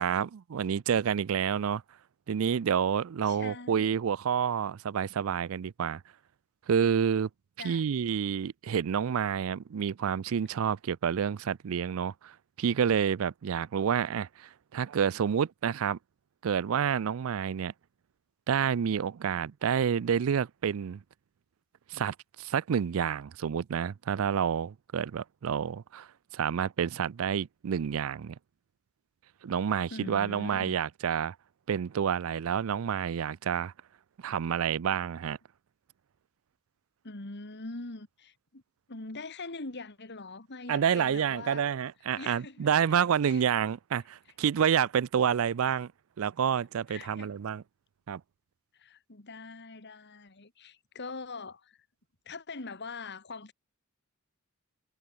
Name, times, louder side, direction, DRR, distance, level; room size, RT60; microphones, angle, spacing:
voice 1, 0.0-1.8 2.3-6.0 6.7-7.3 7.6-16.0 16.4-17.7 18.5-21.0 21.9-26.1 26.3-28.4 29.4-31.4 31.7-33.7 34.2-35.4 40.7-45.9 46.2-47.6 48.1-48.2, right 7 dB, 70° right, 0.4 m, -29 dB
voice 2, 3.3-4.0 7.6-7.8 29.9-30.8 37.0-38.6 38.9-41.7 42.2-42.9 43.2-43.4 46.9-47.3 48.7-51.9 52.3-53.5, left 3 dB, 55° left, 2.2 m, -43 dB
head